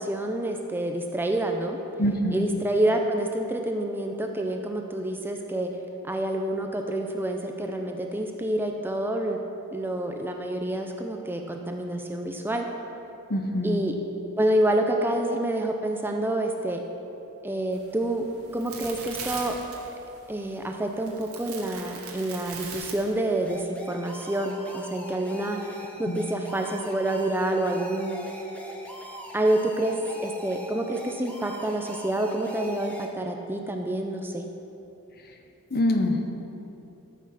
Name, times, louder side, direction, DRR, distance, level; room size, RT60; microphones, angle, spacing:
voice 1, 0.0-1.8 2.3-5.7 6.0-9.4 9.7-12.6 13.6-13.9 14.4-16.8 17.4-18.3 18.5-19.5 20.3-25.7 26.0-28.2 29.3-34.4, right 1 dB, 10° right, 3 dB, 0.5 m, -28 dB
voice 2, 2.0-2.5 13.3-13.8 26.1-26.2 35.7-36.2, left 1 dB, 45° left, 5 dB, 0.9 m, -24 dB
sound 1, 17.7-23.6, right 5 dB, 70° right, 1.7 m, -41 dB
Square Bubble Lead, 23.5-33.1, equal, 5° left, 1.0 m, -42 dB
13.5 x 6.1 x 5.8 m, 2.9 s
head